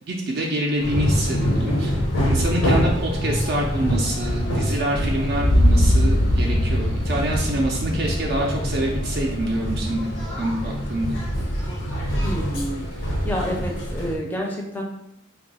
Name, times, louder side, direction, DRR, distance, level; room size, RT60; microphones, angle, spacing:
voice 1, 0.1-2.0 2.3-10.1 10.4-11.1, right 1 dB, 50° right, -1 dB, 0.4 m, -26 dB
sound 1, 0.8-14.1, equal, 90° left, 1.0 m, -25 dB
sound 2, 5.3-9.4, equal, 70° left, 0.6 m, -21 dB
voice 2, 12.2-12.9 13.2-14.8, equal, 10° left, -1 dB, 0.4 m, -28 dB
2.6 x 2.3 x 4.0 m, 0.82 s
head